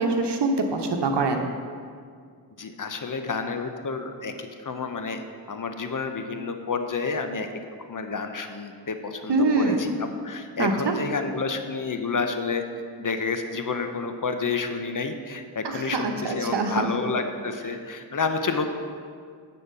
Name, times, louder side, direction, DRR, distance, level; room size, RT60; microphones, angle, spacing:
voice 1, 0.0-1.5 9.3-10.0 10.6-10.9 15.6-16.9, right 3 dB, 70° right, 4 dB, 1.1 m, -24 dB
voice 2, 2.6-5.2 5.5-7.5 7.9-9.9 10.2-12.6 13.0-18.7, left 4 dB, 45° left, 7 dB, 0.9 m, -29 dB
9.8 x 4.4 x 6.9 m, 2.1 s
cardioid pair, 50°, 43 cm